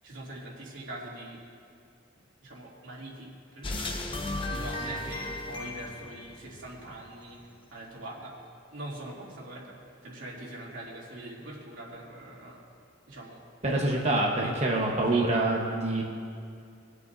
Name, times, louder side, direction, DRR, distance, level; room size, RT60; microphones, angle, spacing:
voice 1, 0.0-1.4 2.4-8.4 8.7-12.6 13.1-14.6 15.1-15.4, right 1 dB, 85° right, -5 dB, 2.8 m, -43 dB
sound 1, 3.6-7.1, left 2 dB, 25° left, 0.8 m, -35 dB
voice 2, 13.6-16.0, right 2 dB, 35° right, -1 dB, 1.2 m, -26 dB
23.0 x 8.1 x 2.7 m, 2.3 s
head